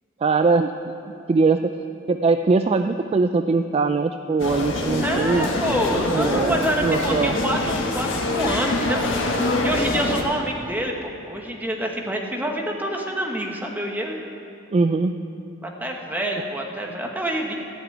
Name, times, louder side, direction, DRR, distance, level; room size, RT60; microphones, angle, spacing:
voice 1, 0.2-1.7 2.1-5.5 6.1-7.4 14.7-15.1, right 4 dB, 30° right, 8 dB, 0.3 m, -21 dB
sound 1, 4.4-10.2, left 2 dB, 80° left, 1.4 m, -25 dB
voice 2, 5.0-9.0 9.6-14.2 15.6-17.5, right 1 dB, 10° right, 1 dB, 1.2 m, -27 dB
14.0 x 6.0 x 9.3 m, 2.6 s
head